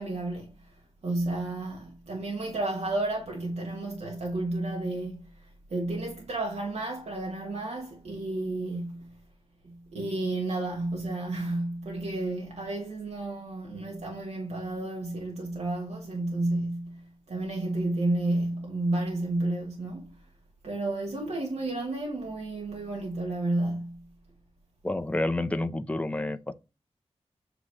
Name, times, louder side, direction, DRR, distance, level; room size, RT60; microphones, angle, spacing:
voice 1, 0.0-9.1 9.6-20.1 20.6-24.0, right 2 dB, 80° right, 1.3 m, -32 dB
voice 2, 24.8-26.5, left 2 dB, 10° left, 0.6 m, -29 dB
7.9 x 3.0 x 6.2 m
wide cardioid pair, 90°, 11 cm